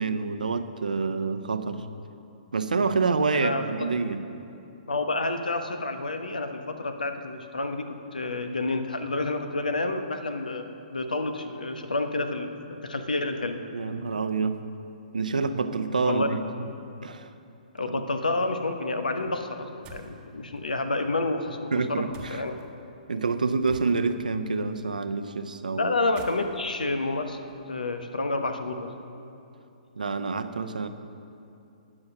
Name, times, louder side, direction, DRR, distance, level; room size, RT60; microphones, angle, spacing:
voice 1, 0.0-1.8 2.5-4.2 13.7-14.6 15.1-16.4 17.0-17.3 17.9-18.0 21.7-22.4 23.1-25.9 30.0-30.9, right 4 dB, 70° right, 10 dB, 0.7 m, -27 dB
voice 2, 3.3-3.7 4.9-10.7 10.9-13.6 16.0-16.3 17.7-22.0 22.3-22.5 25.8-27.4 27.7-28.9, left 2 dB, 75° left, 7 dB, 1.1 m, -29 dB
sound 1, 19.8-20.2 22.1-22.7 23.7-24.3 26.0-27.9, right 4 dB, 20° right, 1.1 m, -48 dB
18.5 x 6.3 x 6.3 m, 2.7 s
figure-of-eight pair, 120°, 4 cm